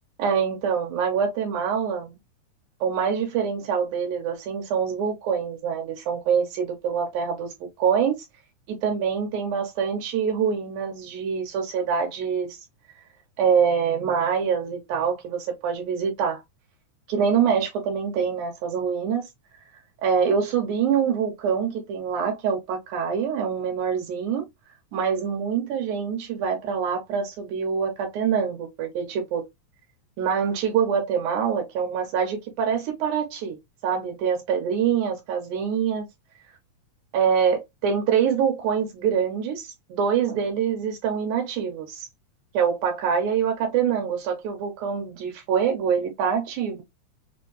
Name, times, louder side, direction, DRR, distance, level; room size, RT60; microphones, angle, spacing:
voice 1, 0.2-2.2 2.8-8.2 8.7-12.6 13.4-16.4 17.1-19.3 20.0-24.5 24.9-29.5 30.2-33.6 33.8-36.1 37.1-42.1 42.5-46.8, right 7 dB, 85° right, 2.3 m, -25 dB
5.5 x 2.5 x 2.9 m
omnidirectional pair, 3.5 m